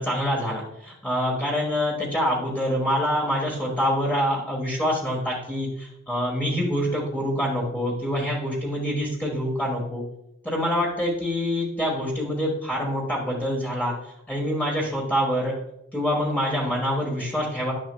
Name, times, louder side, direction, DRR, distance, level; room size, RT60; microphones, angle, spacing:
voice 1, 0.0-10.0 10.4-13.9 14.3-15.6 15.9-17.7, equal, 10° left, -3 dB, 1.2 m, -26 dB
11.5 x 6.3 x 2.2 m, 0.85 s
head